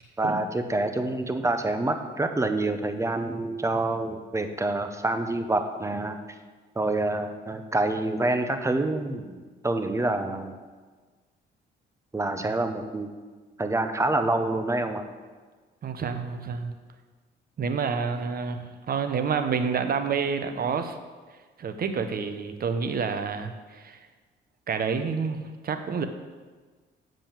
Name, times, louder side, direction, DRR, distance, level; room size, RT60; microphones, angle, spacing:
voice 1, 0.2-6.2 6.7-10.6 12.1-13.1 13.6-15.0, right 2 dB, 15° right, 7 dB, 0.8 m, -27 dB
voice 2, 15.8-16.7 17.6-21.0 21.6-24.0 24.7-26.1, right 5 dB, 50° right, 8 dB, 0.9 m, -28 dB
7.5 x 5.2 x 7.4 m, 1.4 s
cardioid pair, 90°, 20 cm